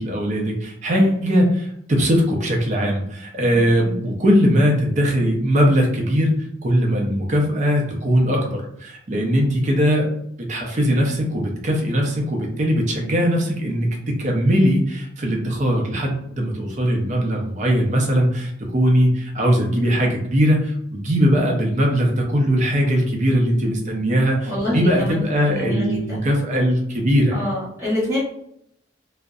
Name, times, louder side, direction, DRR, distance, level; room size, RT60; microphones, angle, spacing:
voice 1, 0.0-10.1 10.4-27.4, equal, 40° right, 0 dB, 0.5 m, -20 dB
voice 2, 3.5-3.8 24.4-25.2 25.4-26.2 27.3-28.2, left 1 dB, 15° right, -9 dB, 1.0 m, -26 dB
2.6 x 2.0 x 2.3 m, 0.71 s
head